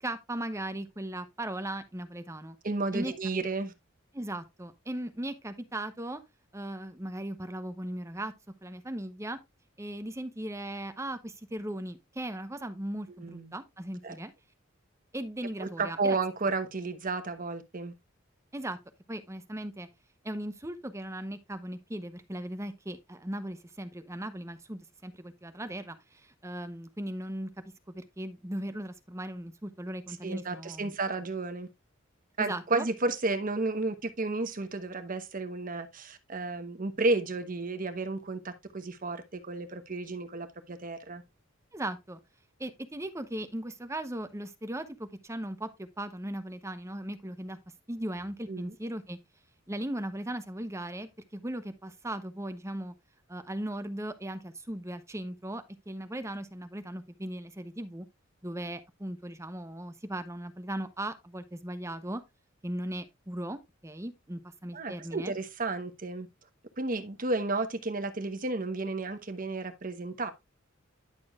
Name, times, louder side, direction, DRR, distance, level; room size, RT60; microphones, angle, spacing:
voice 1, 0.0-2.6 2.9-3.1 4.1-6.2 6.5-8.3 8.6-9.4 9.8-14.3 15.1-16.2 18.5-18.8 19.1-19.9 20.2-27.5 27.9-30.9 32.4-32.9 41.7-42.2 42.6-47.6 47.9-49.2 49.7-52.9 53.3-58.0 58.4-62.2 62.6-65.3, right 1 dB, 15° right, 0.8 m, -38 dB
voice 2, 2.6-3.7 13.2-13.5 14.0-14.2 15.6-17.9 30.2-31.7 32.4-41.2 48.5-48.7 64.7-66.3 66.8-70.3, right 3 dB, 45° right, 1.1 m, -32 dB
10.5 x 6.9 x 2.4 m
head